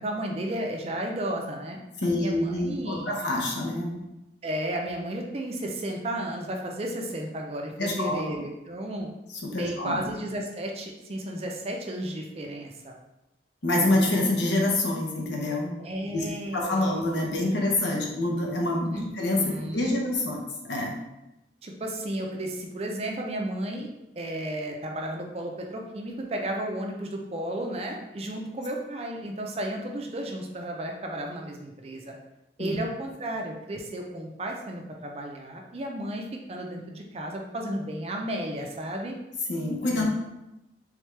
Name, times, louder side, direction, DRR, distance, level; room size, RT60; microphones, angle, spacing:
voice 1, 0.0-3.1 4.4-9.1 9.6-12.9 15.8-16.9 17.9-18.1 18.9-19.1 19.4-19.9 21.6-23.9 24.2-32.1 32.6-39.1 39.8-40.1, right 1 dB, 35° right, 1 dB, 0.4 m, -33 dB
voice 2, 2.0-4.0 7.8-8.2 9.4-10.0 13.6-15.8 16.1-16.2 16.5-20.9 32.6-32.8 39.5-40.1, left 1 dB, 75° left, 0 dB, 0.9 m, -26 dB
3.5 x 3.3 x 3.2 m, 0.94 s
head